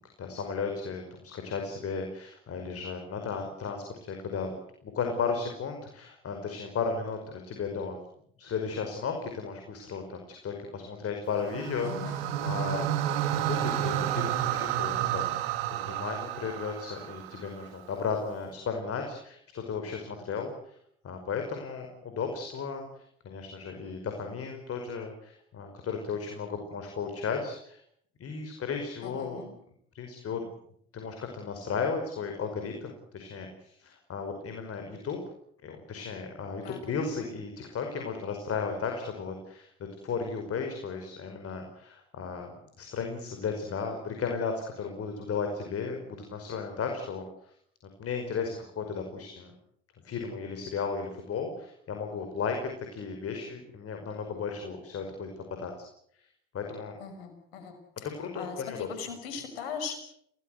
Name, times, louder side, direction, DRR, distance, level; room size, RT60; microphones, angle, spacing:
voice 1, 0.0-4.5 4.8-8.0 8.4-12.9 13.3-15.3 15.7-20.8 21.0-27.8 28.2-29.4 29.9-30.4 30.9-35.2 35.6-39.7 40.0-42.5 42.8-47.5 48.0-49.5 50.0-55.3 55.6-55.7 56.5-57.0 58.2-58.9, left 5 dB, 50° left, 4 dB, 5.4 m, -35 dB
sound 1, 11.4-17.7, right 11 dB, 80° right, 2.0 m, -31 dB
voice 2, 11.8-12.7 29.0-29.5 36.6-36.8 57.0-57.7 58.3-60.0, left 6 dB, 85° left, 7 dB, 5.9 m, -40 dB
28.5 x 18.5 x 8.0 m, 0.68 s
hypercardioid pair, 55°, 29 cm